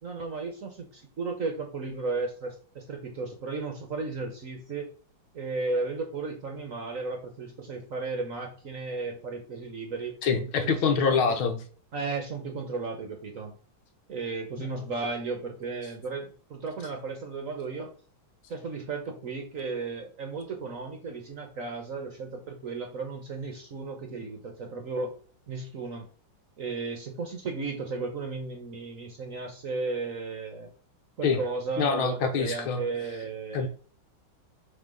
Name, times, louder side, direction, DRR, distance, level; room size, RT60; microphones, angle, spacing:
voice 1, 0.0-4.9 5.3-10.1 10.6-11.4 11.9-13.6 14.1-17.9 18.5-25.1 25.5-26.1 26.6-30.7 31.2-33.7, right 3 dB, 50° right, 4 dB, 1.0 m, -34 dB
voice 2, 10.2-11.6 14.6-14.7 31.2-31.4 31.8-32.8 33.5-33.7, left 5 dB, 80° left, 6 dB, 1.8 m, -25 dB
5.9 x 3.8 x 5.2 m, 0.43 s
omnidirectional pair, 2.3 m